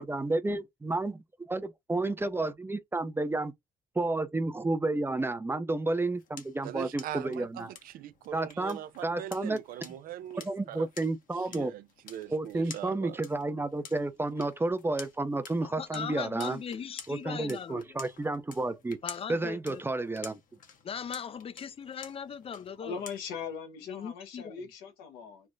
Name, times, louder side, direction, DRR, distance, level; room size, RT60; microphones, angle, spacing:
voice 1, 0.0-3.5 4.0-7.7 8.3-9.6 10.4-11.7 12.3-16.6 17.1-19.0 19.3-20.4, right 2 dB, 15° right, 0.5 m, -31 dB
sound 1, 5.8-23.5, left 6 dB, 65° left, 1.0 m, -51 dB
voice 2, 6.6-10.9 11.5-13.2, right 12 dB, 70° right, 0.4 m, -41 dB
voice 3, 15.6-18.0 19.0-19.8 20.8-23.0 23.9-24.6, left 7 dB, 40° left, 0.5 m, -39 dB
voice 4, 22.7-25.5, left 6 dB, 90° left, 1.0 m, -40 dB
3.3 x 2.1 x 3.6 m
supercardioid pair, 70°, 15 cm